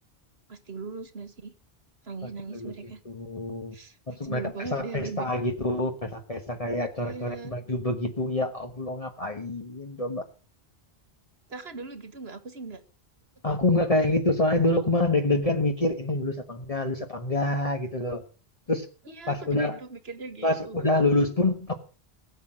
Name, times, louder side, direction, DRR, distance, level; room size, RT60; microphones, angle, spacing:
voice 1, 0.5-1.5 2.0-3.0 3.7-4.0 4.2-5.3 7.0-7.5 11.5-12.8 19.1-21.1, right 4 dB, 85° right, 11 dB, 2.2 m, -39 dB
voice 2, 2.5-3.7 4.1-10.2 13.4-18.2 18.7-18.9 19.3-19.8 20.4-21.8, left 2 dB, 35° left, 3 dB, 1.4 m, -26 dB
18.0 x 8.0 x 7.5 m, 0.37 s
omnidirectional pair, 1.0 m